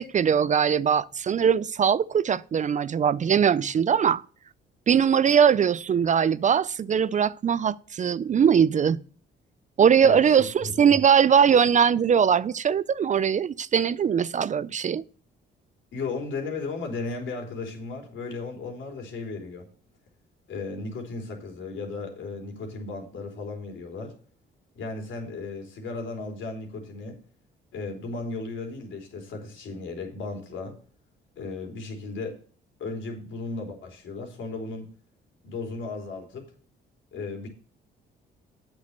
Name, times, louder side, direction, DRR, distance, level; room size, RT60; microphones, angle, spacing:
voice 1, 0.0-4.2 4.9-9.0 9.8-15.0, right 7 dB, 40° right, 0.4 m, -21 dB
voice 2, 10.0-11.0 15.9-19.7 20.5-24.1 24.8-27.2 27.7-30.8 31.4-32.4 32.8-34.9 35.4-36.5 37.1-37.5, left 3 dB, 75° left, 3.5 m, -35 dB
8.6 x 6.3 x 6.5 m
cardioid pair, 90°, 20 cm